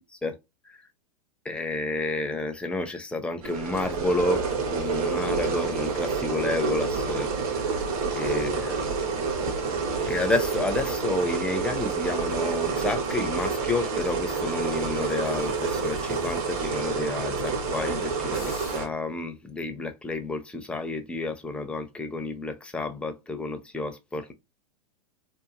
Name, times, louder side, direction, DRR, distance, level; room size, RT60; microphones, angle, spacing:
voice 1, 1.4-7.8 8.1-8.9 9.2-9.4 10.0-24.3, left 2 dB, 5° left, 0.4 m, -30 dB
sound 1, 3.4-18.9, right 5 dB, 65° right, 1.1 m, -28 dB
Toilet flush, 3.9-19.0, left 6 dB, 70° left, 0.6 m, -45 dB
2.8 x 2.4 x 2.4 m
hypercardioid pair, 110°, 20 cm